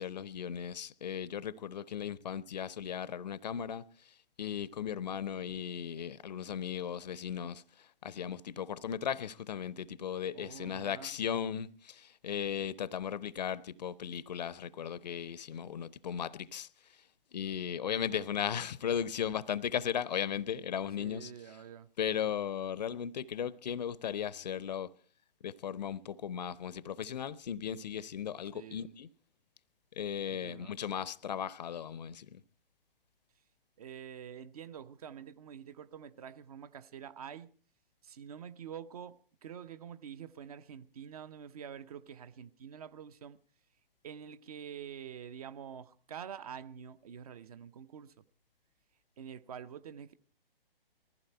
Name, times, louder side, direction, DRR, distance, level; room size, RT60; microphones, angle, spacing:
voice 1, 0.0-3.8 4.4-16.7 17.3-21.3 22.0-24.9 25.4-29.1 30.0-32.4, left 8 dB, 45° left, 0.6 m, -36 dB
voice 2, 10.3-11.2 21.0-21.9 28.5-28.8 30.2-30.8 33.8-37.5 38.0-43.4 44.0-48.1 49.2-50.1, right 8 dB, 40° right, 0.8 m, -47 dB
20.0 x 15.0 x 4.4 m
figure-of-eight pair, 130°, 30 cm